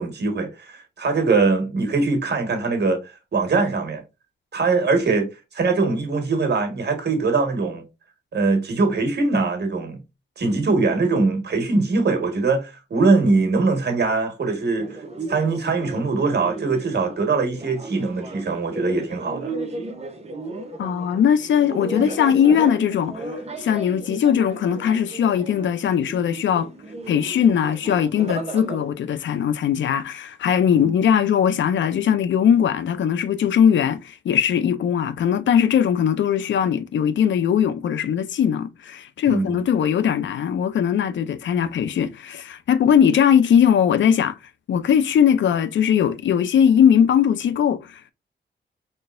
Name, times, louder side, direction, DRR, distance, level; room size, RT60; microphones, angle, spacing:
voice 1, 0.0-4.0 4.5-7.8 8.3-10.0 10.4-15.0 15.3-19.5 30.8-30.9 39.3-39.6, right 3 dB, 60° right, 1.4 m, -22 dB
sound 1, 14.8-28.9, right 2 dB, 35° right, 0.8 m, -34 dB
voice 2, 20.8-23.3 23.6-26.7 27.1-44.4 44.7-48.1, left 8 dB, 75° left, 0.5 m, -20 dB
4.3 x 3.2 x 2.5 m
cardioid pair, 75°, 19 cm